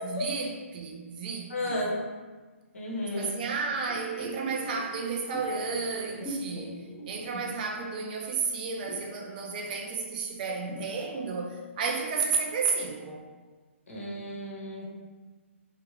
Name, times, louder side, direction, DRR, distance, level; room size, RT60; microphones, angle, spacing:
voice 1, 0.0-1.9 3.2-13.2, right 5 dB, 40° right, 0 dB, 0.4 m, -32 dB
voice 2, 1.5-2.0 2.7-3.3 13.9-14.8, left 1 dB, 80° left, -4 dB, 1.0 m, -33 dB
sound 1, 3.9-8.3 8.5-12.1 12.5-12.6, right 1 dB, 10° left, 0.6 m, -42 dB
2.8 x 2.4 x 2.8 m, 1.4 s
hypercardioid pair, 145°, 7 cm